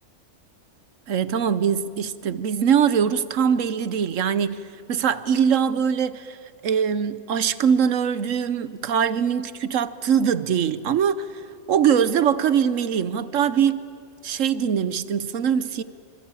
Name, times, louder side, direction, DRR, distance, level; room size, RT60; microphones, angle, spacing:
voice 1, 1.1-4.6 4.9-6.4 6.6-11.3 11.7-13.8 14.2-15.8, right 8 dB, 70° right, 1.1 m, -22 dB
25.5 x 25.0 x 9.0 m
omnidirectional pair, 1.4 m